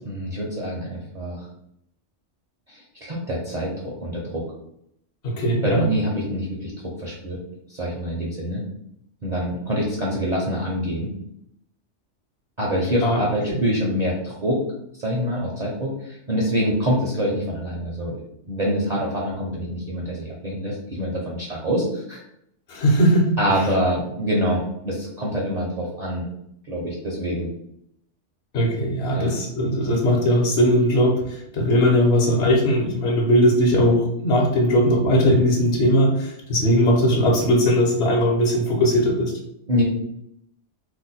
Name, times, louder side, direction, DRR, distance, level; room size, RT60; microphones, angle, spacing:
voice 1, 0.0-1.4 2.7-4.4 5.6-6.7 7.0-7.4 7.7-8.6 9.2-11.1 12.6-14.6 15.0-18.2 18.5-22.2 23.4-26.2 26.7-27.5 29.1-29.3 39.7-39.8, equal, 45° right, -4 dB, 0.6 m, -25 dB
voice 2, 5.2-5.9 13.0-13.6 22.7-23.3 28.5-39.3, equal, 60° left, 0 dB, 1.0 m, -19 dB
2.5 x 2.1 x 4.0 m, 0.75 s
omnidirectional pair, 1.2 m